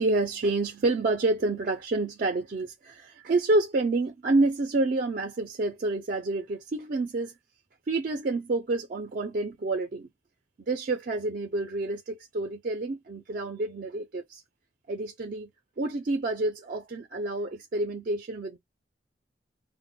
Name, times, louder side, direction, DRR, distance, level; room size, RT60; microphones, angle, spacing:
voice 1, 0.0-7.3 7.9-10.1 10.7-14.4 14.9-15.5 15.8-18.6, right 2 dB, 45° right, 0.4 m, -28 dB
2.1 x 2.1 x 3.7 m
head